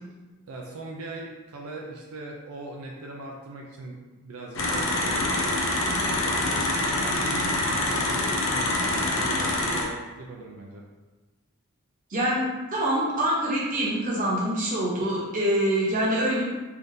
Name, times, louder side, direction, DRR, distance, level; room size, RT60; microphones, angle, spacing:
voice 1, 0.5-10.8, right 2 dB, 80° right, -1 dB, 0.5 m, -40 dB
sound 1, 4.6-9.8, left 2 dB, 60° left, 0.6 m, -25 dB
voice 2, 12.1-16.4, right 1 dB, 35° right, -5 dB, 0.9 m, -25 dB
3.4 x 2.7 x 3.6 m, 1.2 s
head